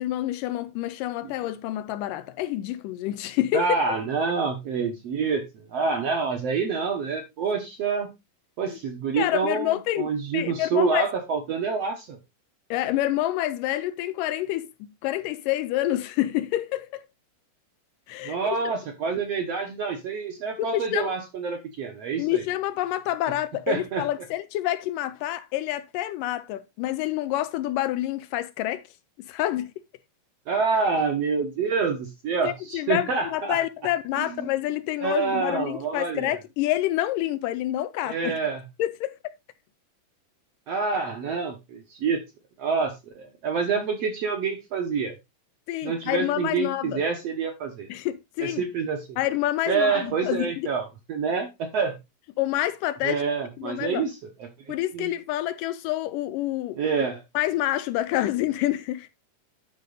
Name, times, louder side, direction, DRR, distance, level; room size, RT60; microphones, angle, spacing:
voice 1, 0.0-3.7 8.6-8.8 9.1-11.1 12.7-17.0 18.1-18.6 20.6-21.1 22.2-28.8 29.2-29.7 32.4-38.3 38.8-39.3 45.7-47.0 47.9-48.6 49.2-50.7 52.4-53.2 53.6-54.0 54.7-56.8 57.3-59.1, left 14 dB, 80° left, 2.1 m, -28 dB
voice 2, 3.5-8.1 8.6-12.2 18.2-22.4 23.7-24.0 30.5-33.6 34.2-34.5 35.0-36.4 38.0-38.6 40.7-42.2 42.6-45.2 45.8-47.9 48.4-49.2 49.7-52.0 53.0-54.1 54.4-54.5 54.9-55.1 56.7-57.2, right 5 dB, 60° right, 1.8 m, -27 dB
10.5 x 5.2 x 3.9 m
omnidirectional pair, 4.1 m